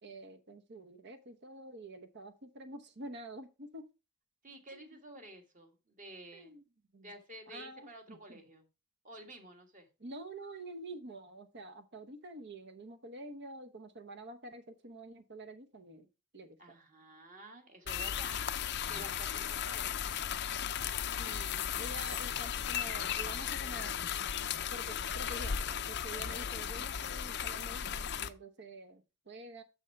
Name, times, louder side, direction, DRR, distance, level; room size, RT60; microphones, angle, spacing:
voice 1, 0.0-3.9 4.7-5.0 6.3-6.6 6.9-7.1 7.5-8.4 10.0-16.1 16.3-16.8 21.2-24.0 24.7-29.6, right 1 dB, 50° right, 9 dB, 1.0 m, -48 dB
voice 2, 4.4-6.5 7.0-8.6 9.0-9.9 16.6-19.9, right 1 dB, 35° right, 4 dB, 1.7 m, -51 dB
sound 1, 17.9-28.3, left 8 dB, 50° left, 0.5 m, -36 dB
6.5 x 6.3 x 4.5 m, 0.29 s
head